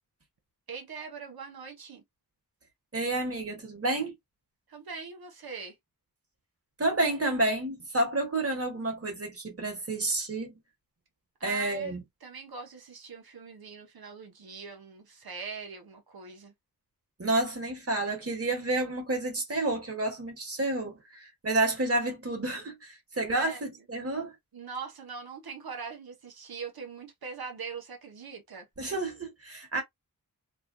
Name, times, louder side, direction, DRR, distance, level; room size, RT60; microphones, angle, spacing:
voice 1, 0.7-2.0 4.7-5.7 11.4-16.5 23.3-23.6 24.5-28.7, right 5 dB, 85° right, 0.8 m, -42 dB
voice 2, 2.9-4.1 6.8-10.6 11.4-12.0 17.2-24.3 28.8-29.8, right 2 dB, 40° right, 1.5 m, -30 dB
3.2 x 2.2 x 2.5 m
wide cardioid pair, 80°, 36 cm